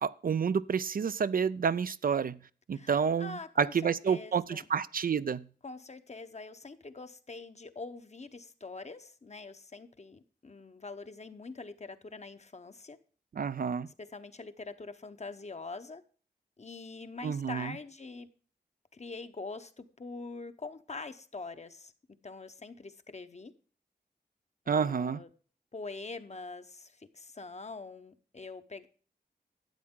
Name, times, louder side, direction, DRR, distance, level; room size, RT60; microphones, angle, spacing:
voice 1, 0.0-2.4 2.7-5.4 13.4-13.9 17.2-17.7 24.7-25.2, right 6 dB, 60° right, 0.4 m, -29 dB
voice 2, 2.7-4.7 5.6-13.0 13.8-16.0 16.6-18.3 18.9-21.9 22.2-23.5 24.6-25.3 25.7-28.9, left 3 dB, 40° left, 0.9 m, -44 dB
12.0 x 8.5 x 3.7 m
wide cardioid pair, 65°, 17 cm